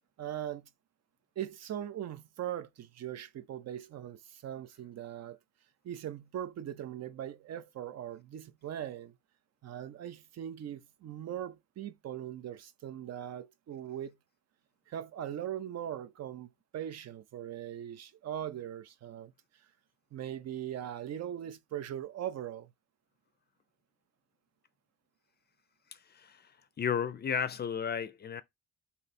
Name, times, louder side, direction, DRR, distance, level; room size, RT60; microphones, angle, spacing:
voice 1, 0.2-0.7 1.4-5.4 5.8-9.1 9.6-14.2 14.9-19.3 20.1-22.7, right 10 dB, 60° right, 0.6 m, -40 dB
voice 2, 25.9-26.5 26.8-28.4, left 7 dB, 35° left, 0.4 m, -33 dB
3.1 x 2.8 x 4.1 m
cardioid pair, 90°, 30 cm